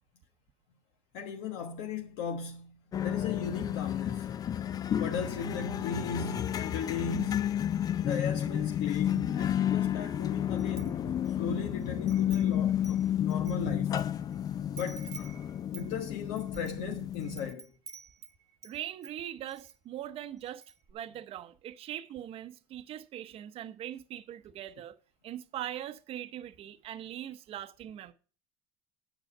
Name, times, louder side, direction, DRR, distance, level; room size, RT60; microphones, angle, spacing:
voice 1, 1.1-2.8 3.0-4.3 5.0-7.5 8.0-14.0 14.8-15.1 15.7-17.7, left 6 dB, 75° left, 1.2 m, -37 dB
sound 1, 2.9-17.5, left 10 dB, 25° left, 0.4 m, -31 dB
Wind chime, 10.6-11.4 11.8-14.0 14.3-14.4 14.8-18.8 19.0-19.8 20.1-20.2 20.5-20.9, right 5 dB, 20° right, 1.1 m, -49 dB
voice 2, 18.6-20.6 20.9-24.9 25.2-28.1, right 11 dB, 45° right, 0.9 m, -41 dB
9.2 x 7.0 x 5.4 m
cardioid pair, 135°, 14 cm